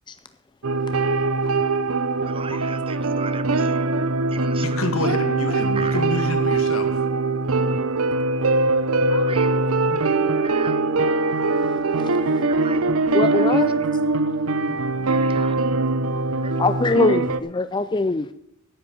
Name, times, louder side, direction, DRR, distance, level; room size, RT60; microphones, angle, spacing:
sound 1, 0.6-17.4, right 3 dB, 80° right, 0.8 m, -22 dB
voice 1, 2.2-3.8 4.3-4.8 5.8-6.0 9.2-9.6 10.0-10.1 10.4-10.8 12.5-12.8 13.3-13.6 15.1-15.6 16.4-16.6, right 5 dB, 25° right, 14 dB, 0.6 m, -36 dB
voice 2, 4.6-6.9, left 2 dB, 75° left, 6 dB, 1.9 m, -28 dB
voice 3, 13.1-13.8 16.6-18.3, left 3 dB, 20° left, 11 dB, 0.4 m, -22 dB
10.0 x 8.5 x 7.7 m, 0.79 s
head